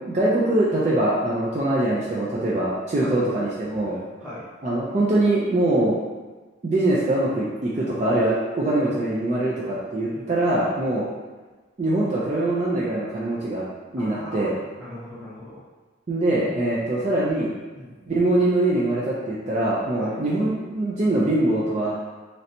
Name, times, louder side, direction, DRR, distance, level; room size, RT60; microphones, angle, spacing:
voice 1, 0.0-4.0 4.6-6.0 6.6-11.1 11.8-13.6 13.9-14.5 16.1-17.5 18.1-22.0, right 1 dB, 35° right, -7 dB, 0.4 m, -23 dB
voice 2, 3.8-4.5 10.0-10.4 14.0-15.6 17.7-18.1 20.0-20.2, left 1 dB, 5° right, -9 dB, 0.8 m, -39 dB
3.2 x 2.6 x 2.7 m, 1.3 s
head